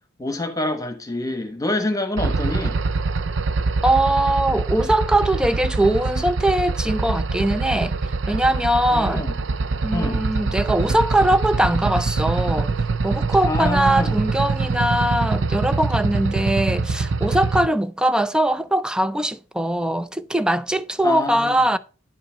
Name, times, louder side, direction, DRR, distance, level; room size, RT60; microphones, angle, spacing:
voice 1, 0.2-2.8 8.9-9.3 9.9-10.3 13.5-14.2 21.0-21.6, left 2 dB, 20° left, 1.3 m, -26 dB
sound 1, 2.2-17.7, right 4 dB, 70° right, 0.5 m, -24 dB
voice 2, 3.8-9.3 9.8-21.8, right 1 dB, 5° right, 0.4 m, -21 dB
10.0 x 5.7 x 3.9 m
head